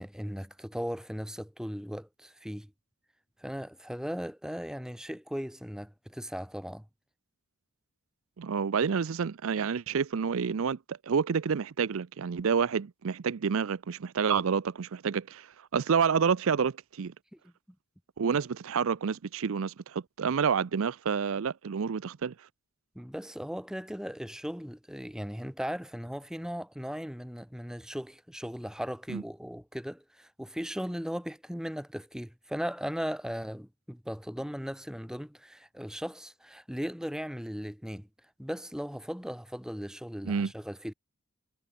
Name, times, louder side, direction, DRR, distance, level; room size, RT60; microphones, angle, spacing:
voice 1, 0.0-2.7 3.4-6.8 17.3-17.5 22.9-40.9, equal, 5° right, 1.1 m, -37 dB
voice 2, 8.4-17.1 18.2-22.5 29.1-29.2 40.2-40.5, right 6 dB, 65° right, 0.5 m, -29 dB
head